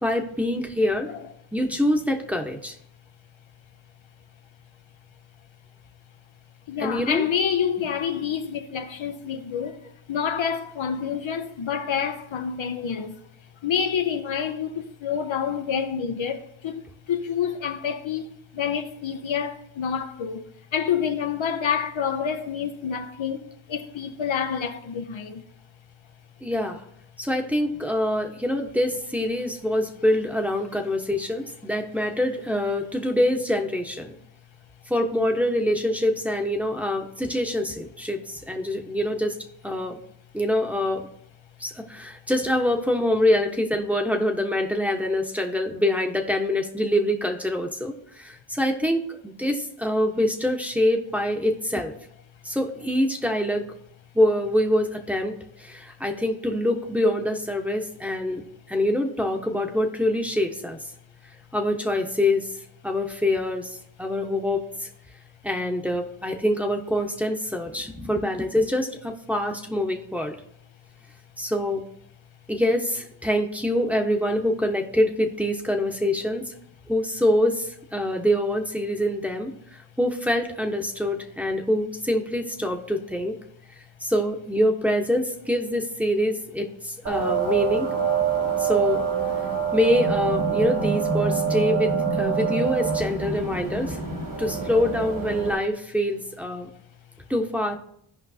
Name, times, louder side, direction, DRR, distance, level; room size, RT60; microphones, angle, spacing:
voice 1, 0.0-1.1 1.5-2.8 6.8-7.2 26.4-26.8 27.2-34.2 34.9-39.4 39.6-40.0 40.3-41.1 41.6-51.9 52.4-53.6 54.1-60.8 61.5-62.5 62.8-64.9 65.4-70.4 71.4-71.8 72.5-76.5 76.9-83.4 84.0-87.9 88.6-89.0 89.7-94.0 94.4-96.7 97.3-97.8, left 1 dB, 5° right, 1.1 m, -25 dB
voice 2, 6.7-9.8 10.1-13.2 13.6-23.4 23.7-25.4, left 7 dB, 70° left, 0.8 m, -28 dB
sound 1, 87.0-95.5, right 6 dB, 80° right, 3.0 m, -25 dB
15.5 x 5.2 x 2.8 m
cardioid pair, 60°, 48 cm